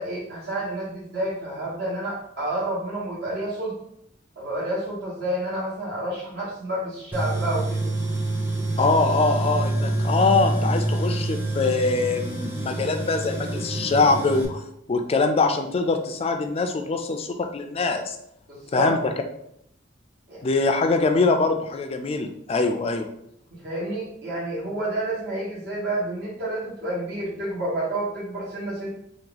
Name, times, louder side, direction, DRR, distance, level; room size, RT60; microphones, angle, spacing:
voice 1, 0.0-3.8 4.3-7.8 18.5-18.9 20.3-20.4 23.5-28.9, right 1 dB, 60° right, -7 dB, 1.4 m, -29 dB
Tools, 7.1-14.4, right 1 dB, 10° right, 0.7 m, -27 dB
voice 2, 8.8-14.6 14.9-18.2 18.7-19.1 20.4-23.1, left 3 dB, 30° left, 6 dB, 0.3 m, -23 dB
2.9 x 2.3 x 3.7 m, 0.75 s
head